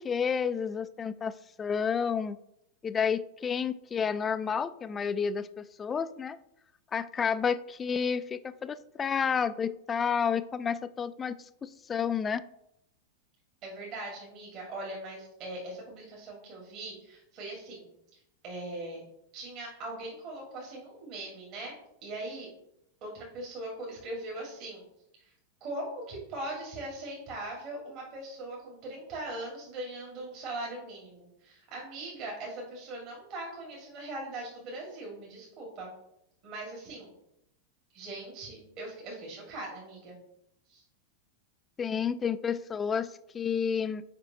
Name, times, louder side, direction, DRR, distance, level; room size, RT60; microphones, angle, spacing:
voice 1, 0.0-2.4 2.8-6.4 6.9-12.4 41.8-44.0, left 6 dB, 20° left, 14 dB, 0.3 m, -30 dB
voice 2, 13.6-17.9 18.4-19.0 19.3-21.7 22.0-22.5 23.0-24.8 25.2-25.3 25.6-35.9 36.4-37.1 37.9-40.2 40.7-40.8, right 2 dB, 40° right, -2 dB, 1.9 m, -40 dB
7.8 x 5.1 x 2.8 m, 0.78 s
figure-of-eight pair, 90°, 0 cm